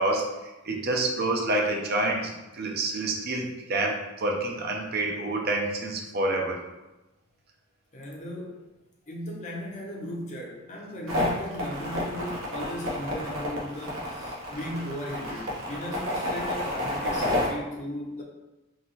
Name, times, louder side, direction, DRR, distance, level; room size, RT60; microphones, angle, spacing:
voice 1, 0.0-6.6, right 2 dB, 50° right, 1 dB, 0.6 m, -28 dB
voice 2, 7.9-8.7 9.1-18.2, equal, 35° left, -2 dB, 0.7 m, -36 dB
sound 1, 11.1-17.5, left 1 dB, 80° right, 1.0 m, -30 dB
3.9 x 2.9 x 2.8 m, 1.0 s
head